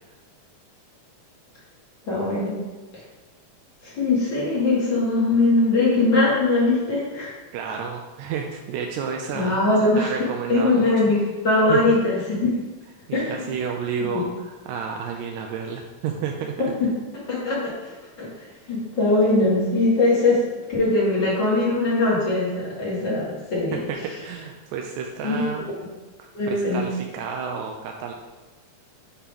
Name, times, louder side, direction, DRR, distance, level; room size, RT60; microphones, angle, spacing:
voice 1, 2.1-2.6 2.9-3.0 3.8-7.3 9.3-10.1 10.5-11.2 11.4-12.5 13.1-13.5 14.1-14.2 16.6-18.3 18.7-20.4 20.7-23.8 25.2-25.7 26.3-26.9, left 2 dB, 45° left, -6 dB, 2.1 m, -21 dB
voice 2, 7.5-9.6 10.0-10.9 11.7-11.9 13.1-16.6 23.7-25.7 26.2-28.1, right 6 dB, 85° right, 2 dB, 1.9 m, -31 dB
8.5 x 2.9 x 5.3 m, 1.2 s
omnidirectional pair, 3.3 m